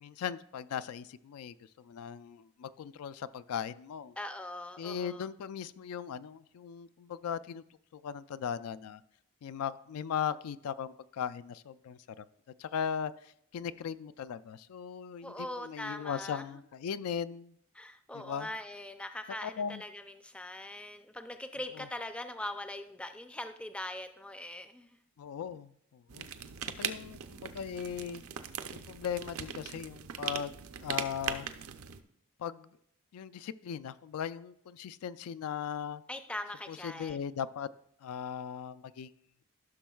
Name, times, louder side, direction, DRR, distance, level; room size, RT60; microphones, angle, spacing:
voice 1, 0.0-4.2 4.8-7.6 7.9-9.0 9.4-12.3 12.6-17.6 18.1-18.5 19.4-19.8 21.8-21.9 25.2-26.3 26.8-28.2 28.7-31.5 32.4-32.8 33.1-36.0 36.7-37.7 38.0-39.1, left 8 dB, 90° left, 15 dB, 0.3 m, -38 dB
voice 2, 4.2-5.3 15.2-16.5 17.7-25.0 36.1-37.2, left 1 dB, 5° left, 8 dB, 0.3 m, -41 dB
sound 1, 26.1-32.0, right 8 dB, 80° right, 0.5 m, -40 dB
14.5 x 6.2 x 2.3 m, 0.71 s
head